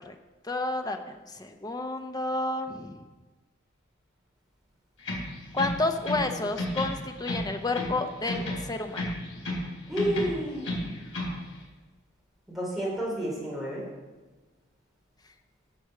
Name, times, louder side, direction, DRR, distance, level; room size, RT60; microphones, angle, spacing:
voice 1, 0.5-3.0 5.5-9.0, left 2 dB, 20° left, 5 dB, 0.8 m, -30 dB
sound 1, 5.0-6.3 6.6-8.0 8.3-9.7 10.0-11.4, left 1 dB, 70° left, 3.6 m, -32 dB
voice 2, 9.9-10.9 12.5-13.8, equal, ahead, -6 dB, 3.7 m, -31 dB
9.5 x 7.1 x 6.6 m, 1.3 s
head